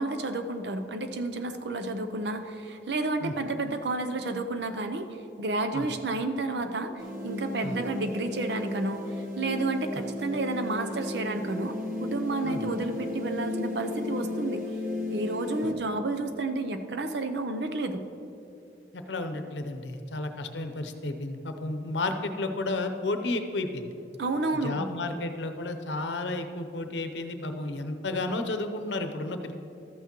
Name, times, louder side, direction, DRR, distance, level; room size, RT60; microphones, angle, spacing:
voice 1, 0.0-5.1 5.4-6.9 7.2-14.6 15.1-18.0 24.2-24.9, right 2 dB, 75° right, 8 dB, 0.6 m, -31 dB
sound 1, 7.0-15.7, left 2 dB, 50° right, 1.2 m, -34 dB
voice 2, 18.9-23.9 24.6-29.5, left 2 dB, 90° left, 7 dB, 0.7 m, -32 dB
13.0 x 8.2 x 3.0 m, 2.7 s
head